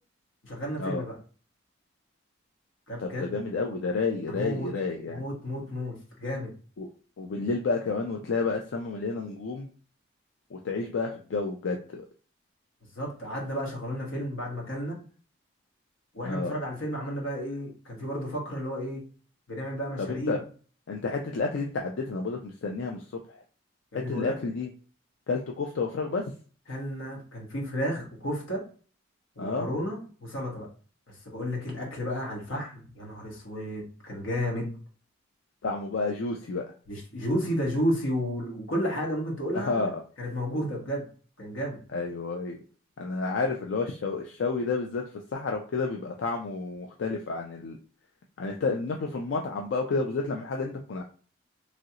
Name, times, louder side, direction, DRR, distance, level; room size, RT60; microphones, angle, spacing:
voice 1, 0.4-1.1 2.9-3.4 4.3-4.7 5.1-6.5 12.9-15.0 16.1-19.0 19.5-20.4 23.9-24.4 26.7-28.6 29.4-30.7 31.1-34.8 36.9-39.9 40.2-41.1 41.4-41.8, equal, 90° left, -2 dB, 1.2 m, -32 dB
voice 2, 3.0-5.2 6.8-6.9 7.2-9.7 10.5-12.1 16.2-16.6 20.0-20.4 20.9-23.0 23.3-23.4 24.1-24.7 25.3-26.2 29.4-29.7 35.6-36.6 39.5-39.9 41.9-42.6 43.0-45.0 45.3-47.8 48.4-51.0, left 4 dB, 70° left, 2 dB, 0.4 m, -30 dB
3.0 x 2.5 x 2.8 m, 0.40 s
head